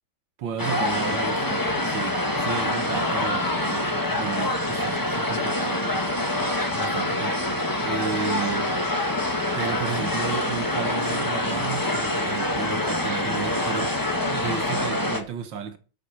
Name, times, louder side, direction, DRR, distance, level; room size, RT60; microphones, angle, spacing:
voice 1, 0.4-6.0 6.7-8.8 9.5-14.0 14.3-15.8, right 7 dB, 65° right, 1.8 m, -33 dB
sound 1, 0.6-15.2, left 1 dB, 10° left, 1.4 m, -25 dB
13.0 x 6.5 x 5.9 m
omnidirectional pair, 2.2 m